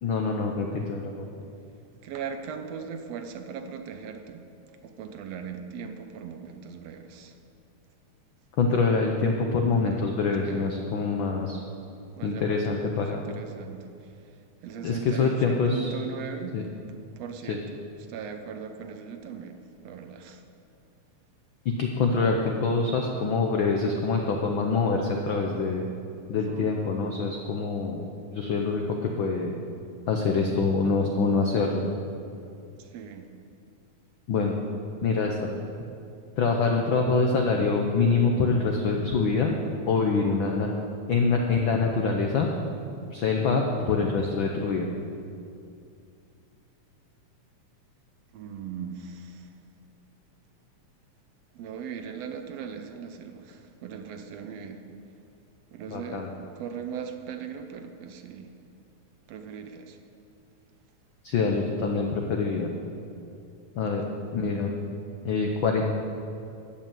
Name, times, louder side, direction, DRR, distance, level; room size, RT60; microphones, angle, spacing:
voice 1, 0.0-1.3 8.6-11.6 12.2-13.3 14.8-15.9 16.5-16.6 17.5-17.6 21.6-25.9 26.3-28.0 28.3-29.5 30.1-31.8 34.3-34.5 35.0-35.5 36.4-39.5 39.8-40.7 41.1-42.5 43.1-44.9 55.9-56.3 61.2-62.7 63.8-64.0 64.3-64.7 65.2-65.9, left 4 dB, 80° left, 2 dB, 1.1 m, -25 dB
voice 2, 2.0-4.4 4.8-7.4 10.4-10.8 12.2-16.6 16.9-17.8 18.1-20.4 26.5-26.7 29.8-29.9 32.8-33.3 48.3-49.5 51.5-55.0 55.7-58.5 59.3-60.0, right 7 dB, 70° right, 6 dB, 1.7 m, -39 dB
13.5 x 5.7 x 8.9 m, 2.5 s
omnidirectional pair, 3.3 m